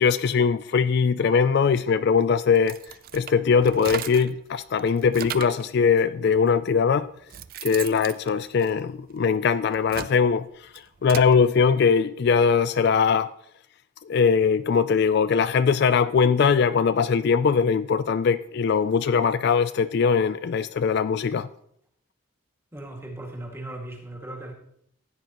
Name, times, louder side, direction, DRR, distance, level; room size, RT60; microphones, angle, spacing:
voice 1, 0.0-2.8 3.1-7.1 7.6-10.5 11.0-13.3 14.1-21.5, left 6 dB, 50° left, 0.3 m, -21 dB
sound 1, 2.5-4.4 4.8-5.7 6.5-6.6 7.0-9.2 9.7-11.3, right 9 dB, 45° right, 0.4 m, -37 dB
voice 2, 22.7-24.5, right 1 dB, 10° right, 2.1 m, -37 dB
15.5 x 9.5 x 3.0 m
head